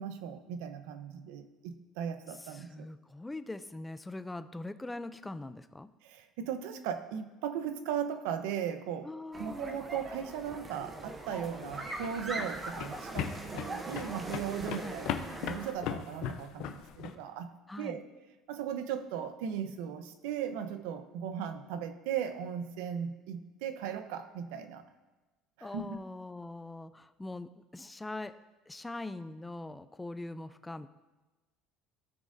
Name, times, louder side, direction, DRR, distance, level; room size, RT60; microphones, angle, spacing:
voice 1, 0.0-2.9 6.0-9.1 9.4-17.5 17.8-18.0 18.5-24.8 25.6-26.0, right 8 dB, 85° right, 10 dB, 0.7 m, -37 dB
voice 2, 2.4-5.9 9.0-9.8 14.8-15.0 17.7-18.0 25.6-28.3 28.7-30.9, left 2 dB, 5° left, 11 dB, 0.3 m, -42 dB
sound 1, 9.3-15.7, right 2 dB, 15° right, 0.7 m, -41 dB
sound 2, 11.5-17.1, left 9 dB, 55° left, 0.6 m, -38 dB
16.5 x 6.3 x 2.6 m, 1.2 s
cardioid pair, 165°, 0 cm